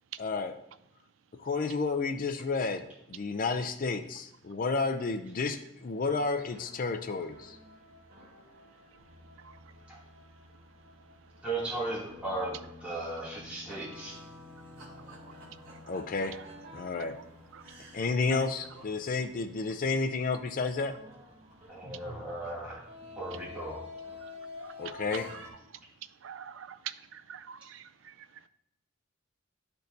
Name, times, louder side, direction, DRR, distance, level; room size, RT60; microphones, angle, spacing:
voice 1, 0.2-0.5 1.4-7.6 15.9-16.4 16.7-17.2 17.9-20.9 24.8-25.3, left 4 dB, 45° left, 0.4 m, -31 dB
sound 1, 6.2-25.5, left 2 dB, 50° right, 2.1 m, -50 dB
voice 2, 11.4-14.2 21.7-22.8 23.2-23.8, right 2 dB, 5° right, 2.4 m, -36 dB
voice 3, 26.2-28.1, right 9 dB, 80° right, 0.4 m, -44 dB
11.5 x 4.5 x 2.6 m
head